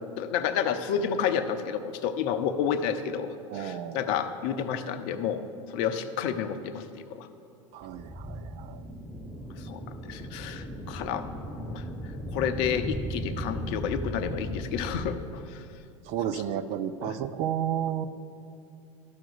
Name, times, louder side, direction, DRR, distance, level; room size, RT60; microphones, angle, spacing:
voice 1, 0.2-7.3 9.6-11.8 12.3-15.6 16.3-16.4 17.0-17.2, left 7 dB, 50° left, 10 dB, 0.7 m, -30 dB
voice 2, 3.5-4.1 7.7-8.8 16.1-18.1, right 10 dB, 40° right, 11 dB, 0.5 m, -32 dB
sound 1, 7.9-15.1, equal, 15° left, 1.4 m, -36 dB
12.5 x 6.0 x 6.7 m, 2.6 s
figure-of-eight pair, 75°, 17 cm